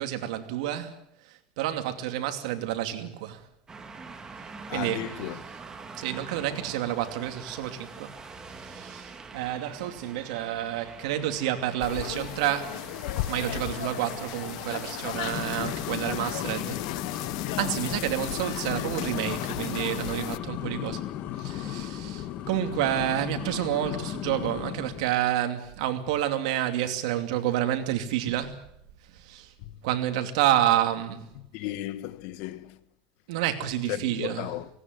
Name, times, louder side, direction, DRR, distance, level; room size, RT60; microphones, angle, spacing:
voice 1, 0.0-3.5 4.7-5.3 6.0-8.1 8.5-12.8 13.3-16.8 17.1-21.0 21.4-28.6 29.1-29.5 29.8-31.3 33.3-34.5, right 12 dB, 85° right, 2.7 m, -29 dB
sound 1, 3.7-20.2, right 4 dB, 20° right, 2.1 m, -45 dB
voice 2, 4.7-5.4 31.5-32.8 33.9-34.7, left 14 dB, 65° left, 1.5 m, -34 dB
sound 2, 11.8-20.4, left 17 dB, 80° left, 0.9 m, -35 dB
sound 3, 15.1-25.2, left 11 dB, 50° left, 1.8 m, -35 dB
18.5 x 18.0 x 9.4 m
supercardioid pair, 140°, 3 cm